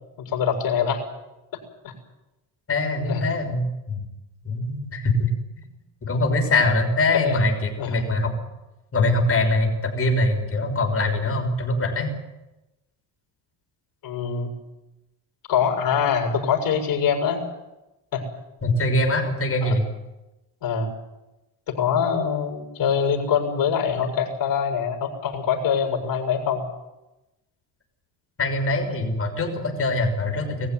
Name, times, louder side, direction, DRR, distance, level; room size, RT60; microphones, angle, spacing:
voice 1, 0.2-1.0 1.8-1.9 3.1-3.2 7.1-7.4 7.8-8.1 14.0-14.5 15.5-17.4 18.1-18.2 19.6-19.7 20.6-20.9 21.7-26.6, left 7 dB, 55° left, 2 dB, 7.0 m, -24 dB
voice 2, 2.7-4.0 4.4-5.3 5.6-5.7 6.0-8.3 8.9-12.1 18.6-19.8 28.4-30.7, left 2 dB, 35° left, 3 dB, 6.5 m, -23 dB
22.0 x 15.0 x 9.5 m, 1.0 s
cardioid pair, 110°, 40 cm